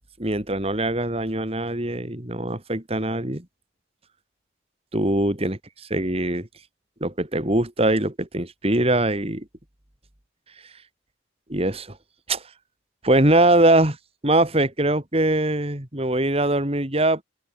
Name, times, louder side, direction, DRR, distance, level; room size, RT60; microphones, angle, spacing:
voice 1, 0.2-3.5 4.9-5.6 5.9-6.5 7.0-9.5 11.5-12.0 12.3-12.4 13.0-14.0 14.2-17.2, right 1 dB, 30° right, 2.9 m, -22 dB
open air
head